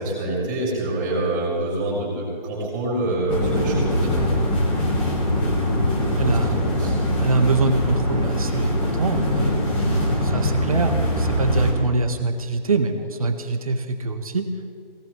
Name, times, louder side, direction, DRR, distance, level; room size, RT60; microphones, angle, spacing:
voice 1, 0.0-4.1 6.3-6.9, right 2 dB, 10° right, -10 dB, 4.3 m, -26 dB
sound 1, 3.3-11.7, equal, 5° left, 1.2 m, -22 dB
voice 2, 6.2-6.6 7.2-9.6 10.2-14.5, right 3 dB, 40° right, 7 dB, 1.4 m, -24 dB
23.0 x 18.0 x 3.2 m, 2.1 s
figure-of-eight pair, 165°, 29 cm